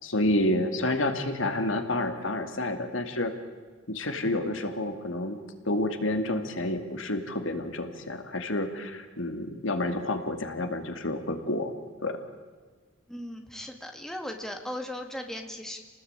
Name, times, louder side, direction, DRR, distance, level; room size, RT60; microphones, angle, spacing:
voice 1, 0.0-3.3 3.9-11.7 12.0-12.2, left 1 dB, 70° left, 7 dB, 2.5 m, -29 dB
voice 2, 13.1-15.8, left 1 dB, ahead, 4 dB, 2.1 m, -37 dB
28.0 x 19.5 x 9.0 m, 1.5 s
head